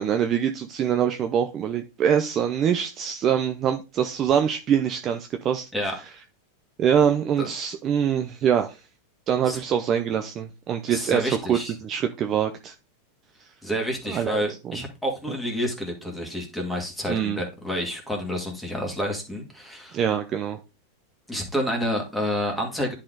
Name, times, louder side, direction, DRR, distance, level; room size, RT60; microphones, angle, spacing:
voice 1, 0.0-5.7 6.8-8.8 9.3-12.7 14.1-14.4 14.7-14.8 17.1-17.4 19.9-20.6, right 8 dB, 25° right, 7 dB, 0.7 m, -24 dB
voice 2, 10.9-11.7 13.6-20.0 21.3-22.9, equal, ahead, 0 dB, 2.1 m, -29 dB
10.5 x 4.3 x 3.9 m, 0.28 s
supercardioid pair, 155°, 0 cm